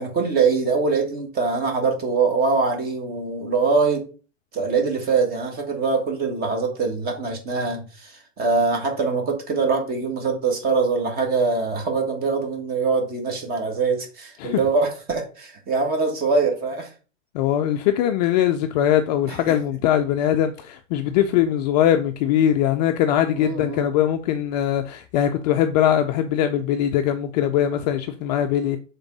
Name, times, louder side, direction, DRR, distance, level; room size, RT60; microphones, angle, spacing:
voice 1, 0.0-4.1 4.5-16.9 19.5-19.6 23.3-23.9, right 4 dB, 25° right, 1.6 m, -23 dB
voice 2, 17.3-28.8, left 10 dB, 35° left, 0.4 m, -21 dB
6.9 x 3.7 x 4.0 m
hypercardioid pair, 135°, 38 cm